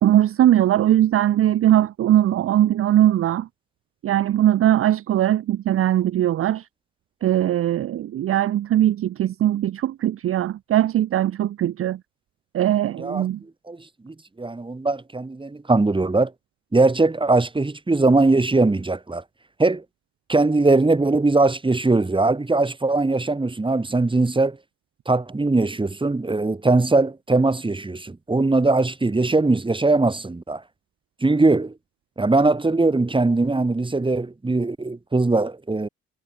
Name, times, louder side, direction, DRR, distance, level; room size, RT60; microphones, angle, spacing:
voice 1, 0.0-3.5 4.0-6.7 7.2-12.0 12.5-13.4, right 12 dB, 50° right, 0.5 m, -20 dB
voice 2, 14.0-16.3 16.7-19.2 19.6-19.8 20.3-24.6 25.1-30.6 31.2-31.7 32.2-35.9, right 3 dB, 15° right, 2.5 m, -20 dB
cardioid pair, 90°, 30 cm